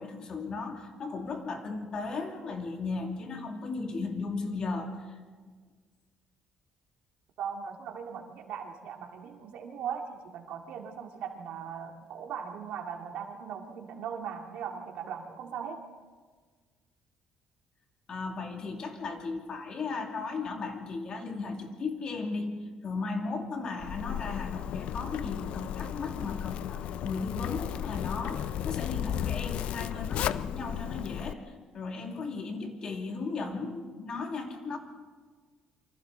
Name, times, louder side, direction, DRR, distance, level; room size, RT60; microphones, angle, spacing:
voice 1, 0.0-5.0 18.1-22.6 22.8-34.8, left 4 dB, 35° left, 2 dB, 2.6 m, -36 dB
voice 2, 7.4-15.8, right 7 dB, 70° right, 2 dB, 2.5 m, -39 dB
Zipper (clothing), 23.8-31.3, left 11 dB, 60° left, 0.5 m, -34 dB
27.5 x 25.5 x 4.1 m, 1.5 s
cardioid pair, 165°, 2 cm